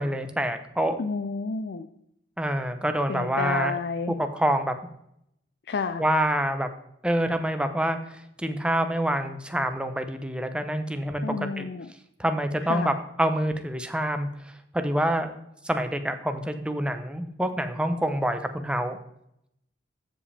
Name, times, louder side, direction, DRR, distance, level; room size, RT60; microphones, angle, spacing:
voice 1, 0.0-1.0 2.4-3.8 4.1-4.7 6.0-6.7 7.0-8.0 8.4-11.2 11.6-11.7 12.2-12.9 13.2-14.3 14.7-15.3 15.6-19.0, right 1 dB, 5° right, 7 dB, 0.7 m, -26 dB
voice 2, 1.0-1.9 3.1-4.1 5.7-6.0 11.2-11.9 12.7-13.0, left 4 dB, 60° left, 8 dB, 0.5 m, -30 dB
14.0 x 5.1 x 3.4 m, 0.76 s
head